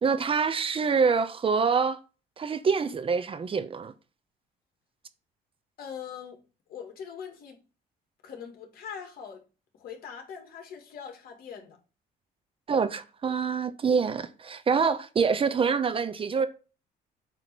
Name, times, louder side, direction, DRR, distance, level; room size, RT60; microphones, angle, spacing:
voice 1, 0.0-2.0 2.4-3.9 12.7-16.5, right 5 dB, 35° right, 0.8 m, -26 dB
voice 2, 5.8-6.4 6.7-7.6 8.2-9.4 9.7-11.8, left 7 dB, 60° left, 2.2 m, -42 dB
8.3 x 3.2 x 6.0 m
cardioid pair, 110°, 17 cm